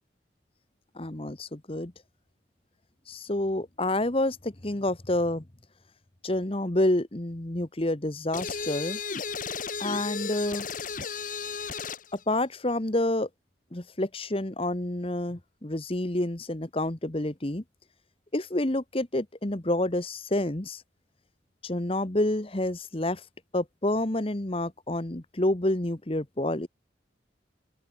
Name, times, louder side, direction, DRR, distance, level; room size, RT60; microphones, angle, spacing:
voice 1, 1.0-1.9 3.1-5.4 6.2-9.0 9.8-10.7 12.1-13.3 13.7-17.6 18.3-20.8 21.6-23.2 23.5-26.7, left 1 dB, 30° left, 1.3 m, -28 dB
sound 1, 8.3-12.1, left 5 dB, 45° left, 1.7 m, -34 dB
open air
head